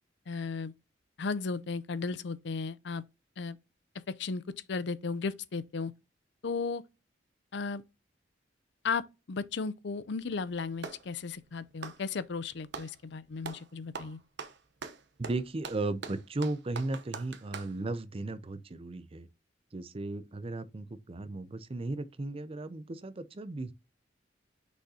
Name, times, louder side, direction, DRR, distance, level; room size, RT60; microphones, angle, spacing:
voice 1, 0.3-0.7 1.2-3.0 3.4-3.6 4.1-4.4 4.7-5.9 6.4-6.8 7.5-7.8 8.8-14.2, left 4 dB, 65° left, 0.5 m, -35 dB
Clapping, 10.2-11.1 11.7-13.0 13.4-13.7 13.9-17.8, right 5 dB, 65° right, 0.9 m, -43 dB
voice 2, 15.2-19.3 19.7-23.7, right 2 dB, 30° right, 0.5 m, -36 dB
6.4 x 5.3 x 2.8 m
head